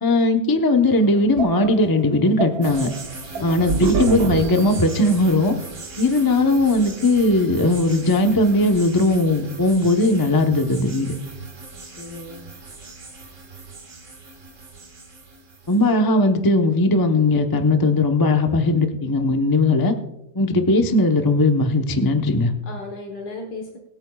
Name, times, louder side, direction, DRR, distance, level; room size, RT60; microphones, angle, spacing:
voice 1, 0.0-2.9 3.4-5.6 6.0-11.1 15.7-19.9 20.3-22.5, left 2 dB, 20° left, 4 dB, 0.5 m, -18 dB
sound 1, 0.9-5.3, right 5 dB, 60° right, 1.3 m, -27 dB
sound 2, 2.6-15.9, right 3 dB, 40° right, 2.0 m, -39 dB
voice 2, 3.2-3.7 11.9-12.5 22.6-23.8, left 3 dB, 70° left, 1 dB, 2.0 m, -35 dB
23.5 x 8.6 x 2.4 m, 0.90 s
omnidirectional pair, 2.0 m